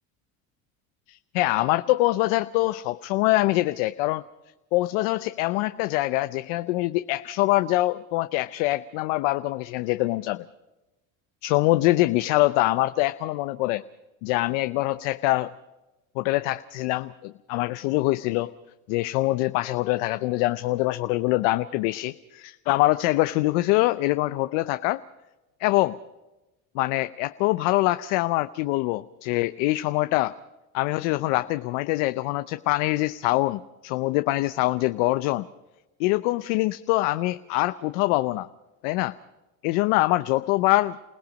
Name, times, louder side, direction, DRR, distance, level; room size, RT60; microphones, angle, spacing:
voice 1, 1.1-4.2 4.7-10.4 11.4-13.8 14.2-15.5 16.2-18.5 18.9-25.0 25.6-26.0 26.7-30.3 30.7-35.5 36.0-38.5 38.8-39.1 39.6-41.0, left 18 dB, 90° left, 12 dB, 0.7 m, -24 dB
28.5 x 17.5 x 5.2 m, 1.0 s
supercardioid pair, 90°, 37 cm